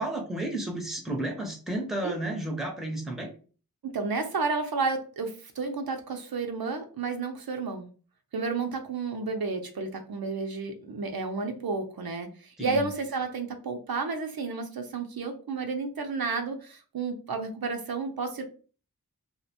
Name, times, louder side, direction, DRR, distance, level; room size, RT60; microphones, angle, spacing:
voice 1, 0.0-3.3 12.6-12.9, right 1 dB, ahead, 2 dB, 0.7 m, -32 dB
voice 2, 3.8-7.9 8.3-18.4, right 4 dB, 70° right, 5 dB, 0.5 m, -31 dB
2.4 x 2.1 x 2.7 m, 0.38 s
wide cardioid pair, 40°, 37 cm